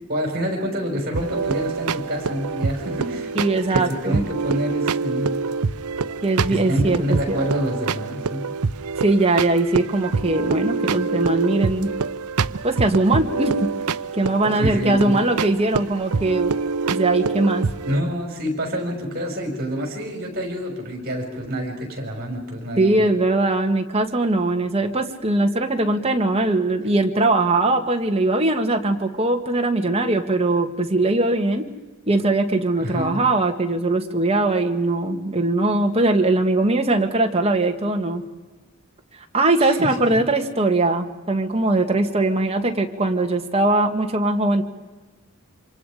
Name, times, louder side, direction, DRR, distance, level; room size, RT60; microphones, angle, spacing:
voice 1, 0.1-3.3 3.7-5.3 6.5-8.5 14.5-15.2 17.8-23.1 32.8-33.2 39.6-40.1, equal, 45° right, 2 dB, 5.6 m, -27 dB
sound 1, 1.1-18.0, right 4 dB, 90° right, 0.6 m, -26 dB
voice 2, 3.3-4.3 6.2-7.4 9.0-11.9 12.6-13.7 14.1-16.5 16.9-17.7 22.8-31.6 32.1-38.2 39.3-44.6, right 2 dB, 25° right, 4 dB, 1.7 m, -21 dB
27.5 x 26.5 x 5.1 m, 1.2 s
head